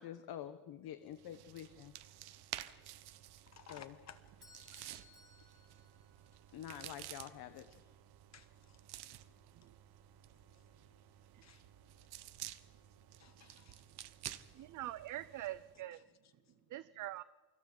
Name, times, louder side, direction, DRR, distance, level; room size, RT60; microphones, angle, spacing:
voice 1, 0.0-1.9 3.7-3.9 6.5-7.7, left 10 dB, 70° left, 10 dB, 1.2 m, -47 dB
sound 1, 1.1-15.8, right 13 dB, 85° right, 1.2 m, -52 dB
voice 2, 3.5-4.2 6.5-6.9 7.7-7.8 8.3-11.7 12.7-12.8 13.2-14.7 15.9-16.6, left 8 dB, 45° left, 10 dB, 1.7 m, -62 dB
Bell / Doorbell, 4.4-6.5, left 3 dB, 10° left, 7.6 m, -62 dB
voice 3, 14.5-16.0 16.7-17.2, right 15 dB, 55° right, 16 dB, 0.5 m, -44 dB
28.5 x 25.0 x 4.0 m, 1.4 s
cardioid pair, 155°, 38 cm